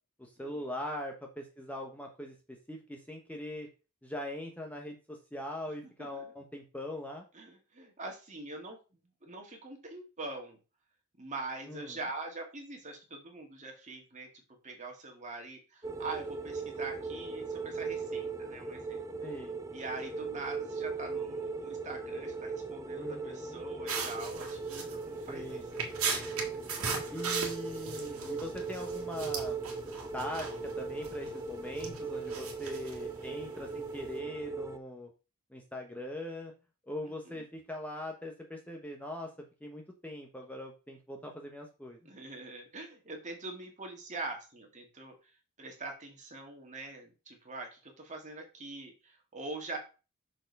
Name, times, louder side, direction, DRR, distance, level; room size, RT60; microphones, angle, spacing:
voice 1, 0.2-3.7 4.0-7.2 11.7-12.0 19.2-19.6 22.9-23.6 25.3-25.7 27.1-29.6 30.1-35.1 35.5-36.5 36.8-39.3 39.6-42.0, left 1 dB, 5° left, 2 dB, 1.0 m, -41 dB
voice 2, 5.8-6.3 7.3-10.6 11.2-14.3 14.6-19.0 19.7-25.6 28.0-28.3 37.3-37.5 42.1-45.3 45.6-49.8, right 2 dB, 35° right, 2 dB, 1.8 m, -44 dB
sound 1, 15.8-34.8, right 4 dB, 15° right, 0.4 m, -39 dB
sound 2, 23.9-34.2, right 5 dB, 70° right, 1.8 m, -39 dB
6.2 x 4.4 x 5.3 m, 0.32 s
head